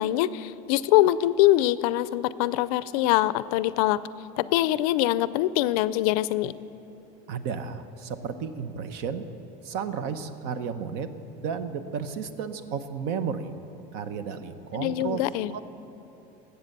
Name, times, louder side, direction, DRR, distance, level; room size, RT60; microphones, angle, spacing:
voice 1, 0.0-4.0 4.4-6.5 14.7-15.5, left 15 dB, 70° left, 17 dB, 0.5 m, -23 dB
voice 2, 7.3-9.3 9.6-13.5 13.9-15.2 15.5-15.6, right 6 dB, 55° right, 11 dB, 0.8 m, -33 dB
19.5 x 8.1 x 6.7 m, 2.9 s
cardioid pair, 170°, 20 cm